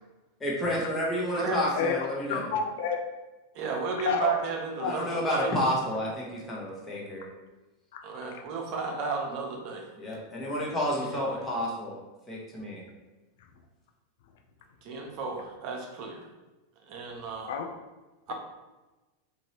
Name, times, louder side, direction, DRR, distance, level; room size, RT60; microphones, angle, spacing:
voice 1, 0.4-2.4 4.8-7.2 10.0-12.0 12.3-12.8, equal, 20° left, -4 dB, 1.1 m, -30 dB
voice 2, 2.3-3.0 4.0-4.3 4.8-4.9 7.9-8.0 17.5-17.7, left 6 dB, 70° left, 4 dB, 0.4 m, -29 dB
voice 3, 3.5-5.6 8.0-9.9 10.9-11.4 14.8-16.3 16.9-17.5 18.3-18.4, right 4 dB, 55° right, 1 dB, 0.7 m, -33 dB
3.0 x 2.6 x 2.8 m, 1.1 s
hypercardioid pair, 105°, 0 cm